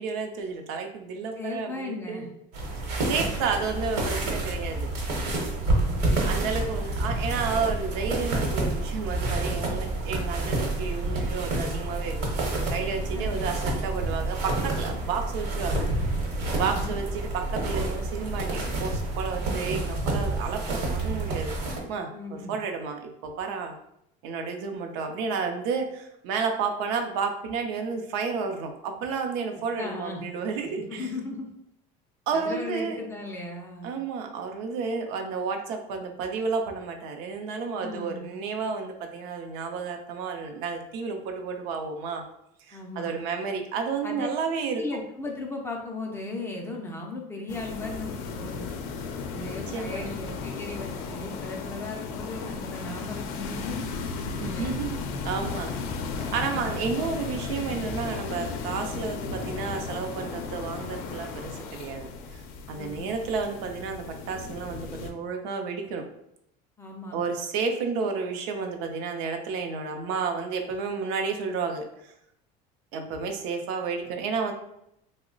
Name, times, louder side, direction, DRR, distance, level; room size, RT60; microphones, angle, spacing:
voice 1, 0.0-2.3 3.0-4.9 6.2-15.9 16.5-21.5 21.9-23.7 24.2-31.1 32.3-33.0 33.8-42.2 42.6-44.8 49.3-50.6 54.2-55.0 55.2-55.7 56.2-62.4 62.7-66.1 67.1-72.1 72.9-74.5, right 5 dB, 85° right, 5 dB, 0.5 m, -31 dB
voice 2, 1.4-2.3 5.6-6.2 13.0-13.5 16.6-17.0 22.1-22.6 29.8-30.2 30.9-31.5 32.3-33.9 37.8-38.3 42.7-43.1 44.0-44.3 44.8-48.6 49.4-53.9 54.4-54.8 62.7-63.1 66.8-67.2, left 2 dB, 15° left, 0 dB, 0.3 m, -37 dB
sound 1, 2.5-21.8, right 2 dB, 65° right, 0.9 m, -28 dB
sound 2, 47.5-65.1, left 5 dB, 80° left, 0.4 m, -35 dB
3.0 x 2.0 x 3.7 m, 0.78 s
cardioid pair, 155°, 18 cm